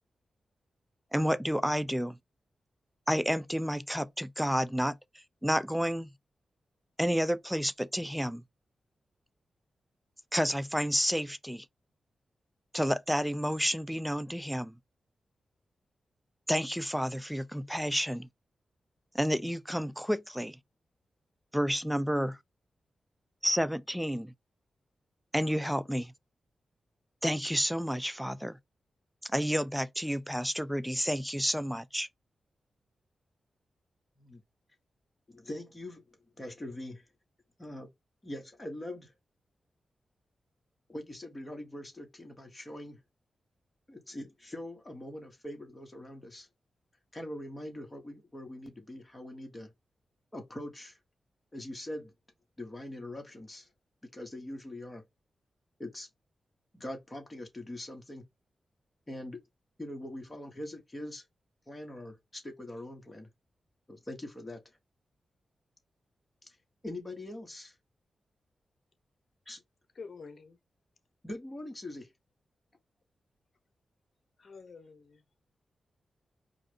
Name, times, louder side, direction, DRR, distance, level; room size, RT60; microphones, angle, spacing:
voice 1, 1.1-2.2 3.1-5.0 5.4-6.1 7.0-8.4 10.3-11.7 12.7-14.7 16.5-18.3 19.1-20.6 21.5-22.4 23.4-24.3 25.3-26.1 27.2-28.6 29.2-32.1, equal, ahead, 0.5 m, -30 dB
voice 2, 35.3-36.0 36.4-37.0 37.6-37.9 38.2-39.1 40.9-43.0 43.9-46.5 47.1-49.7 50.3-51.0 51.5-52.1 52.6-53.7 54.0-55.0 55.8-56.1 56.7-58.3 59.1-59.4 59.8-61.2 61.7-63.3 63.9-64.6 66.4-66.6 66.8-67.7 69.5-69.6 71.2-72.1, left 1 dB, 25° left, 1.9 m, -42 dB
voice 3, 69.9-70.6 74.4-75.2, left 4 dB, 60° left, 1.1 m, -48 dB
4.8 x 2.6 x 3.6 m
cardioid pair, 60°, 0 cm